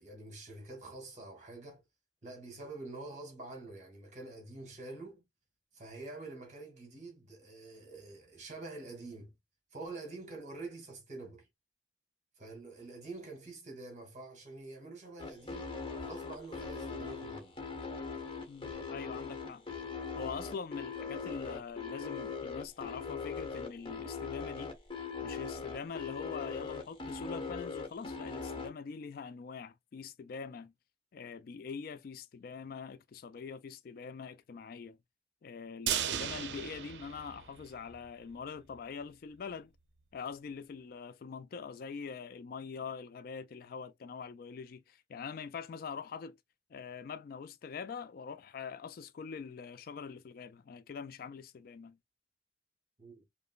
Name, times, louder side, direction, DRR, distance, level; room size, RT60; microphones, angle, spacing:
voice 1, 0.0-1.8 2.2-5.2 5.7-9.3 9.7-11.5 12.4-17.6 53.0-53.2, right 2 dB, 45° right, 1.7 m, -46 dB
sound 1, 15.2-28.7, left 5 dB, 30° left, 1.0 m, -40 dB
voice 2, 18.5-19.6 20.2-24.7 25.2-30.7 31.1-35.0 35.4-39.7 40.1-46.4 46.7-52.0, left 5 dB, 55° left, 0.3 m, -44 dB
sound 2, 35.9-38.0 38.3-38.4 38.8-38.9, right 9 dB, 80° right, 0.5 m, -36 dB
5.0 x 2.1 x 2.3 m
head